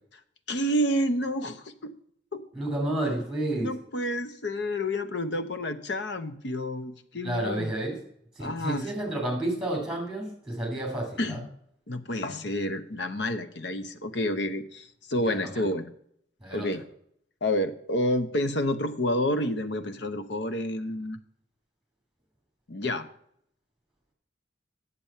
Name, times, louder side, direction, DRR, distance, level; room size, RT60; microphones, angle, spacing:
voice 1, 0.5-1.9 2.3-2.5 3.6-7.7 8.4-8.9 11.2-11.5 11.9-15.9 16.5-16.8 17.4-21.2 22.7-23.1, left 1 dB, 70° left, 9 dB, 0.9 m, -29 dB
voice 2, 2.5-3.7 7.2-8.0 8.4-11.4 15.2-15.6 16.4-16.7, right 1 dB, 5° right, 0 dB, 2.7 m, -31 dB
8.8 x 6.9 x 5.5 m, 0.69 s
head